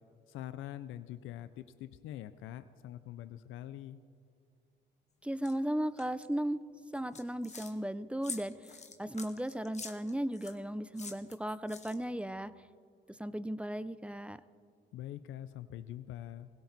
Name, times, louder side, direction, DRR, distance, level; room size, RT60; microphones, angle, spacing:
voice 1, 0.3-4.0 14.9-16.5, left 12 dB, 90° left, 13 dB, 0.5 m, -44 dB
voice 2, 5.2-6.6 6.9-8.5 9.0-12.5 13.2-14.4, right 1 dB, 5° right, 14 dB, 0.5 m, -36 dB
Creature Eating, 5.4-5.5 6.0-6.3 6.9-7.7 8.2-10.6 11.0-12.2, left 4 dB, 35° left, 1.5 m, -46 dB
21.0 x 16.5 x 4.1 m, 2.2 s
cardioid pair, 90°, 20 cm